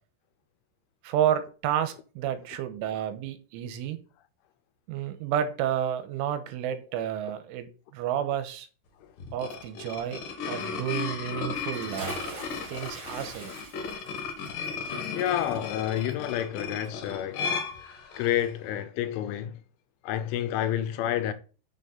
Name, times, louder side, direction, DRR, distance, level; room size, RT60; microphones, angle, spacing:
voice 1, 1.0-4.0 4.9-8.7 9.3-12.2 12.7-13.6, right 10 dB, 85° right, 3.2 m, -31 dB
sound 1, 9.2-18.5, left 5 dB, 60° left, 2.4 m, -35 dB
Bathtub (filling or washing) / Splash splatter, 11.6-16.6 16.8-16.9, right 2 dB, 25° right, 2.5 m, -43 dB
voice 2, 14.9-17.4 18.2-19.6 20.0-21.3, left 11 dB, 80° left, 3.1 m, -29 dB
7.2 x 6.6 x 4.1 m
omnidirectional pair, 5.8 m